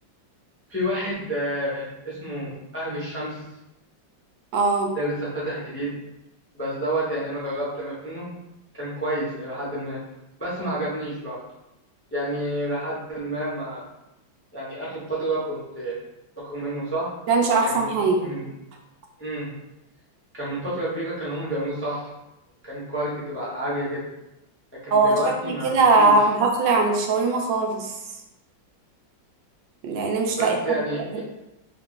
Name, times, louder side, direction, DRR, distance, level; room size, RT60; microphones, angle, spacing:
voice 1, 0.7-3.4 4.9-5.9 6.5-8.3 8.7-10.0 10.4-11.4 12.1-13.8 14.5-16.0 16.4-17.1 17.6-18.5 19.2-19.5 20.3-22.1 22.6-24.0 24.8-26.1 30.4-31.2, right 1 dB, 15° left, -8 dB, 0.4 m, -29 dB
voice 2, 4.5-4.9 17.3-18.3 24.9-27.9 29.8-30.6 30.9-31.2, right 3 dB, 80° right, 2 dB, 1.3 m, -21 dB
3.2 x 2.4 x 3.6 m, 0.92 s
omnidirectional pair, 2.0 m